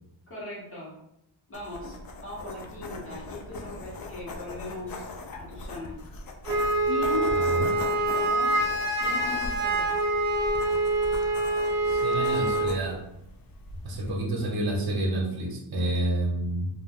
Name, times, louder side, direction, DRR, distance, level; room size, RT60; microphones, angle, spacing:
voice 1, 0.3-0.9 1.5-6.0 6.8-8.6 9.0-9.9, left 2 dB, 30° left, -8 dB, 1.4 m, -39 dB
sound 1, 1.5-14.3, left 2 dB, 50° left, 0.5 m, -40 dB
Wind instrument woodwind instrument, 6.4-12.7, right 2 dB, 35° right, 0.6 m, -25 dB
voice 2, 7.3-7.7 11.9-13.0 13.8-16.7, right 1 dB, 55° right, 0 dB, 0.9 m, -29 dB
2.7 x 2.1 x 3.5 m, 0.81 s
wide cardioid pair, 115°, 45 cm